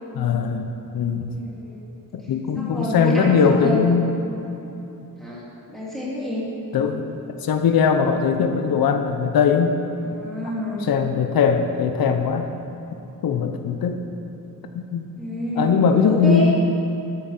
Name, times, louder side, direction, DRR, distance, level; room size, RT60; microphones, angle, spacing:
voice 1, 0.2-0.7 0.9-1.3 2.1-4.1 6.7-7.1 7.4-9.8 10.9-12.5 13.2-14.0 14.7-15.0 15.6-16.5, left 6 dB, 85° left, 6 dB, 0.9 m, -20 dB
voice 2, 1.3-1.8 2.6-3.8 5.2-5.4 5.7-6.5 10.0-10.8 15.2-16.5, equal, ahead, -8 dB, 3.3 m, -28 dB
13.5 x 8.7 x 5.9 m, 3.0 s
wide cardioid pair, 180°, 34 cm